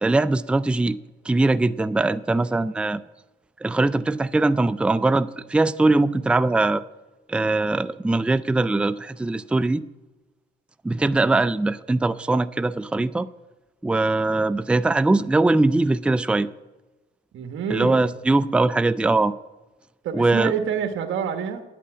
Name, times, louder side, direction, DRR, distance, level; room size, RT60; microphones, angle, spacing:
voice 1, 0.0-1.0 1.3-3.0 3.6-6.8 7.3-9.8 10.8-13.3 13.8-16.5 17.7-19.3 20.1-20.5, right 2 dB, 5° right, 14 dB, 0.4 m, -21 dB
voice 2, 17.3-18.1 20.0-21.6, right 7 dB, 75° right, 7 dB, 1.2 m, -27 dB
9.6 x 8.4 x 8.4 m, 1.1 s
cardioid pair, 90°, 20 cm